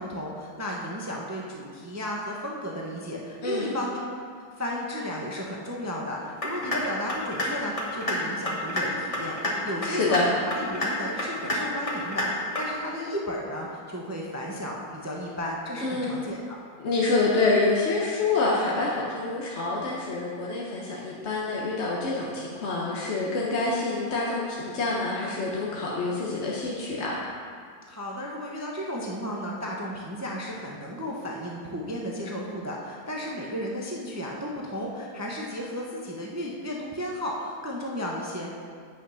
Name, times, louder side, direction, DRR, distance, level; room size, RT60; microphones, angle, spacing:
voice 1, 0.0-4.0 4.3-16.6 27.9-38.6, equal, 20° right, -2 dB, 0.4 m, -34 dB
voice 2, 3.4-3.7 9.9-10.3 15.8-16.1 16.8-27.2, left 3 dB, 45° left, -4 dB, 1.1 m, -27 dB
Content warning, 6.4-6.8 7.1-7.5 7.8-8.2 8.5-8.8 9.1-9.5 9.8-10.2 10.5-10.9 11.2-11.6 11.9-12.3 12.6-12.7, left 1 dB, 20° left, 1.3 m, -28 dB
8.8 x 6.2 x 5.6 m, 2.1 s
omnidirectional pair, 1.9 m